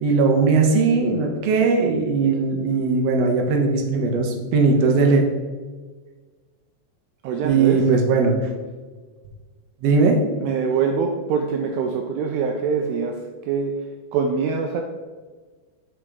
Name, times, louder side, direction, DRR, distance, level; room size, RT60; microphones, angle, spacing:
voice 1, 0.0-5.2 7.4-8.4 9.8-10.2, right 4 dB, 70° right, 3 dB, 1.6 m, -19 dB
voice 2, 7.2-7.8 10.4-13.9 14.1-14.8, right 5 dB, 85° right, 3 dB, 1.7 m, -24 dB
7.2 x 5.1 x 3.5 m, 1.4 s
omnidirectional pair, 3.8 m